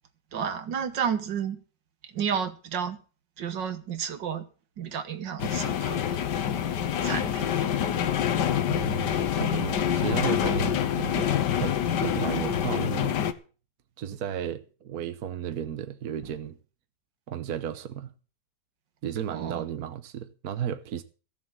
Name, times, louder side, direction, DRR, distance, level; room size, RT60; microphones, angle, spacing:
voice 1, 0.3-1.6 2.0-3.0 3.4-4.5 4.8-6.0 7.0-7.7 19.3-19.6, right 7 dB, 75° right, 2.0 m, -31 dB
sound 1, 5.4-13.3, left 9 dB, 70° left, 1.6 m, -26 dB
voice 2, 8.7-13.2 14.0-16.6 17.3-18.1 19.0-21.0, right 9 dB, 60° right, 1.4 m, -34 dB
15.5 x 7.3 x 7.7 m
omnidirectional pair, 2.0 m